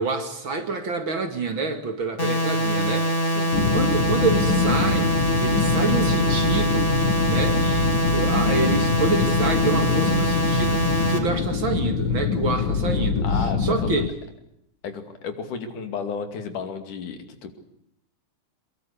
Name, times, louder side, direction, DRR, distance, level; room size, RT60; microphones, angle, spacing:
voice 1, 0.0-3.1 3.7-6.9 7.2-14.1, right 4 dB, 45° right, 7 dB, 2.6 m, -27 dB
sound 1, 2.2-11.2, right 1 dB, 15° left, 3.4 m, -23 dB
sound 2, 3.5-14.1, left 7 dB, 55° left, 1.5 m, -25 dB
voice 2, 13.2-14.0 14.8-17.6, left 5 dB, 85° left, 7 dB, 4.0 m, -33 dB
23.5 x 22.0 x 8.4 m, 0.77 s
omnidirectional pair, 3.5 m